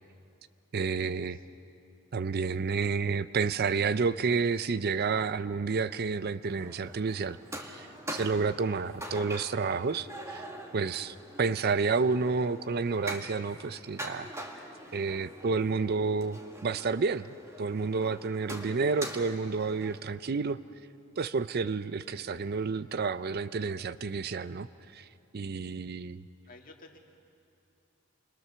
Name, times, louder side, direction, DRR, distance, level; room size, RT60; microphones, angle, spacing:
voice 1, 0.7-1.4 2.1-10.4 10.7-14.3 14.9-17.3 17.6-20.6 21.2-24.7 24.9-25.1 25.3-26.2, right 4 dB, 50° right, 14 dB, 0.5 m, -30 dB
voice 2, 1.3-1.6 26.5-27.0, left 2 dB, 40° left, 2 dB, 2.1 m, -53 dB
sound 1, 6.4-20.0, right 1 dB, 15° right, 1.8 m, -44 dB
28.5 x 21.5 x 6.9 m, 2.8 s
head